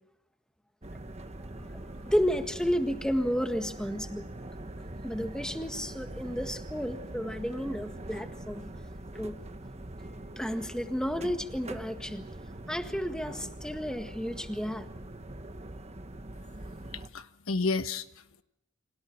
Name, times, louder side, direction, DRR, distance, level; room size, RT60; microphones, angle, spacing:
sound 1, 0.8-17.1, right 1 dB, 30° right, 1.4 m, -43 dB
voice 1, 1.6-4.3 5.0-8.7 9.1-9.4 10.3-12.2 12.7-14.9, equal, 5° left, 6 dB, 1.7 m, -32 dB
voice 2, 16.9-18.4, left 3 dB, 70° left, 10 dB, 1.3 m, -32 dB
29.5 x 26.0 x 4.6 m, 0.85 s
head